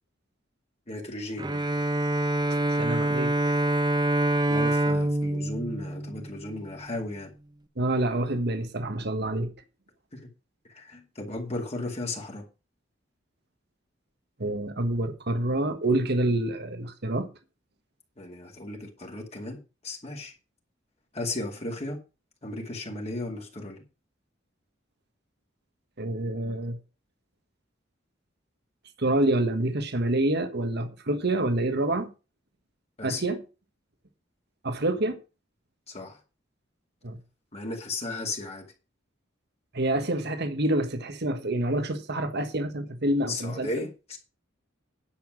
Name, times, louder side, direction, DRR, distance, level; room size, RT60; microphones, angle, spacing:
voice 1, 0.9-1.5 4.5-7.3 10.1-10.2 10.7-12.4 18.2-20.3 21.1-22.0 22.4-23.8 33.0-33.2 35.9-36.2 37.5-38.7 43.3-44.2, left 2 dB, 35° left, 2.4 m, -35 dB
Bowed string instrument, 1.4-6.8, right 1 dB, 20° right, 0.9 m, -26 dB
voice 2, 2.5-3.4 7.8-9.5 14.4-17.3 26.0-26.8 29.0-32.1 33.0-33.4 34.6-35.2 37.0-37.2 39.7-43.9, right 1 dB, 60° right, 1.5 m, -27 dB
10.5 x 7.1 x 6.2 m
head